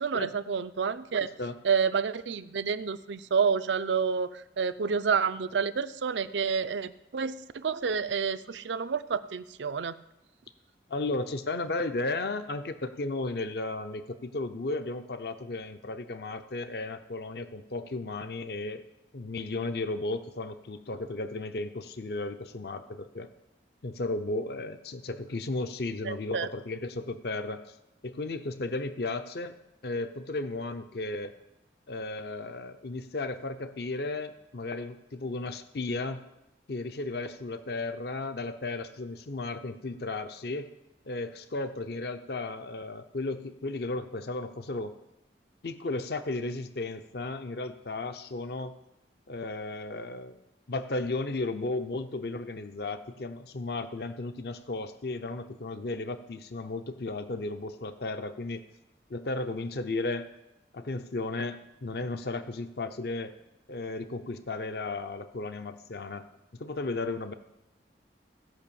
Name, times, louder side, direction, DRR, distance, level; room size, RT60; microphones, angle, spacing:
voice 1, 0.0-1.3 1.6-10.0 26.0-26.5, right 6 dB, 90° right, 13 dB, 0.5 m, -29 dB
voice 2, 10.9-18.8 19.1-23.3 23.8-27.7 28.0-29.5 29.8-31.4 31.9-36.2 36.7-40.7 41.1-44.9 45.6-48.7 49.3-50.4 50.7-58.6 59.1-60.3 60.7-63.3 63.7-66.2 66.6-67.3, left 2 dB, 60° left, 10 dB, 0.6 m, -34 dB
16.0 x 5.5 x 6.9 m, 0.92 s
head